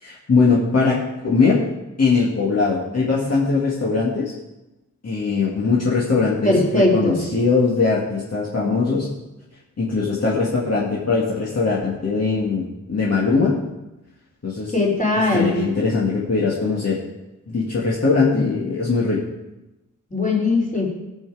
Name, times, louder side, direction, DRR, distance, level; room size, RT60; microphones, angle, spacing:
voice 1, 0.0-1.6 2.0-4.3 5.0-9.1 9.8-13.6 14.4-14.7 15.3-17.0 17.5-19.2, left 4 dB, 50° left, -5 dB, 2.1 m, -20 dB
voice 2, 6.4-7.2 14.7-15.5 20.1-20.9, left 2 dB, 25° left, -2 dB, 4.0 m, -19 dB
16.0 x 7.5 x 4.8 m, 1.0 s
wide cardioid pair, 95°, 32 cm